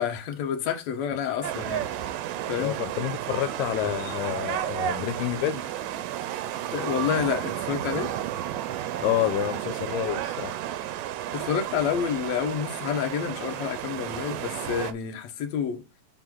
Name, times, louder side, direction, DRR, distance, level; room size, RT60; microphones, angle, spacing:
voice 1, 0.0-1.9 2.5-2.7 6.7-8.1 11.3-15.8, left 8 dB, 60° left, 2.3 m, -29 dB
sound 1, 1.4-14.9, right 11 dB, 80° right, 2.4 m, -32 dB
voice 2, 2.6-5.6 9.0-10.6, left 12 dB, 85° left, 2.4 m, -28 dB
8.0 x 4.1 x 3.8 m
omnidirectional pair, 3.9 m